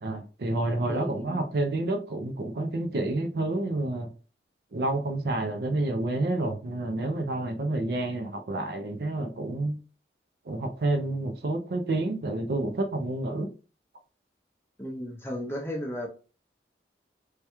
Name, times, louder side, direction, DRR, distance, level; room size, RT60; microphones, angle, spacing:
voice 1, 0.0-4.1 4.7-9.8 10.5-13.5, right 2 dB, 60° right, 0.4 m, -29 dB
voice 2, 0.9-1.4 14.8-16.1, equal, 15° left, 0.5 m, -34 dB
3.4 x 2.2 x 2.8 m
head